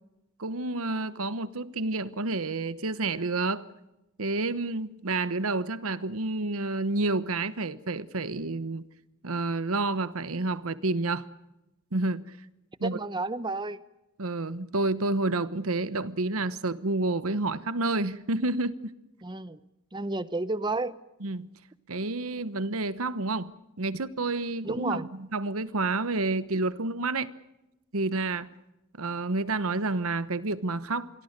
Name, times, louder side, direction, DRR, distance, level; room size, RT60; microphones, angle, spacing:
voice 1, 0.4-3.7 4.2-8.8 9.2-11.2 11.9-12.2 12.8-13.0 14.2-18.9 21.2-21.5 21.9-23.5 23.8-27.3 27.9-28.5 29.0-31.1, right 2 dB, 70° right, 1.1 m, -29 dB
voice 2, 12.8-13.8 19.2-19.6 19.9-21.0 24.6-25.1, right 2 dB, 20° right, 0.8 m, -31 dB
27.0 x 22.5 x 6.7 m
head